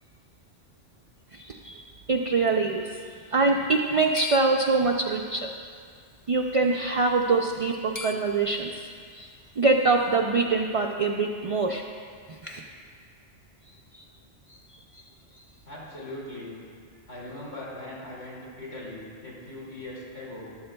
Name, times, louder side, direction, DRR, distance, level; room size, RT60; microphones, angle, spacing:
voice 1, 1.3-3.0 3.3-5.5 6.3-8.9 9.1-9.3 9.6-11.8 12.3-12.6 13.9-14.0 14.5-14.6, right 3 dB, 60° right, 1 dB, 0.3 m, -24 dB
sound 1, 3.8-5.5 6.4-6.7 7.0-7.1 7.5-8.8, left 4 dB, 25° left, 0.4 m, -40 dB
voice 2, 15.6-16.6 17.1-20.6, left 1 dB, 65° left, -7 dB, 2.6 m, -40 dB
14.5 x 11.5 x 2.2 m, 2.1 s
omnidirectional pair, 1.2 m